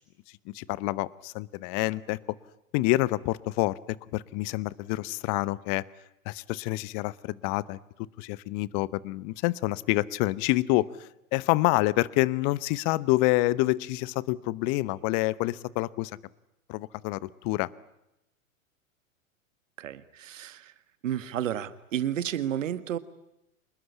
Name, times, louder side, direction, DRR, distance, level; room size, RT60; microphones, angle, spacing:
voice 1, 0.5-2.2 2.7-3.8 4.1-5.8 6.3-7.8 8.2-16.1 16.7-17.7, left 20 dB, 40° left, 20 dB, 1.0 m, -27 dB
voice 2, 19.8-20.7 21.0-23.0, right 10 dB, 70° right, 14 dB, 1.8 m, -31 dB
26.5 x 21.0 x 10.0 m, 0.88 s
hypercardioid pair, 105°, 40 cm